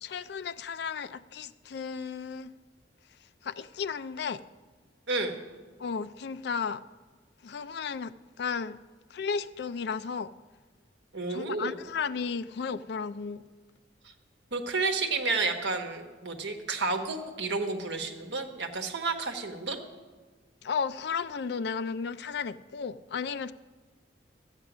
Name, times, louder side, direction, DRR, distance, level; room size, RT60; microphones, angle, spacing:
voice 1, 0.0-2.5 3.4-4.4 5.8-6.8 7.4-8.8 9.1-10.3 11.3-13.4 20.6-23.5, left 6 dB, 60° left, 0.4 m, -34 dB
voice 2, 5.1-5.4 11.1-11.7 14.5-19.8, right 3 dB, 70° right, 1.2 m, -31 dB
13.5 x 8.3 x 6.1 m
head